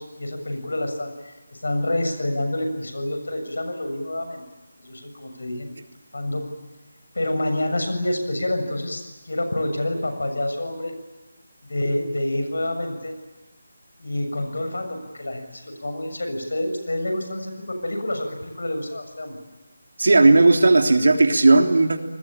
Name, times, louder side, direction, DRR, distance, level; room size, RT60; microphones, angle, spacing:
voice 1, 0.0-1.4 1.6-4.4 4.8-5.7 6.1-6.5 7.1-10.9 11.6-13.1 14.0-19.4, left 1 dB, 90° left, 6 dB, 6.9 m, -28 dB
voice 2, 20.0-22.0, right 2 dB, 70° right, 4 dB, 3.3 m, -15 dB
27.5 x 21.0 x 8.9 m, 1.2 s
figure-of-eight pair, 175°, 0 cm